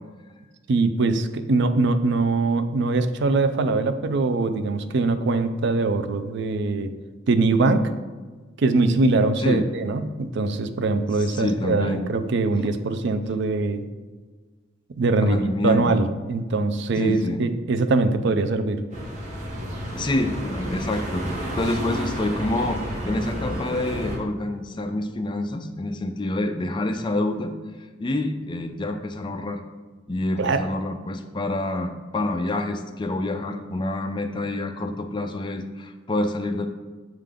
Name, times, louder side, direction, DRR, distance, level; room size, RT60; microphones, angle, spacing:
voice 1, 0.7-6.9 7.3-7.8 8.6-13.9 15.0-18.8 30.4-30.6, right 3 dB, 65° right, 9 dB, 0.4 m, -22 dB
voice 2, 11.2-12.0 15.2-16.0 17.0-17.4 19.9-27.5 28.0-29.6 30.1-36.7, left 2 dB, 25° left, 6 dB, 0.4 m, -27 dB
sound 1, 18.9-24.2, equal, 40° right, 1.6 m, -31 dB
7.5 x 3.7 x 3.5 m, 1.3 s
head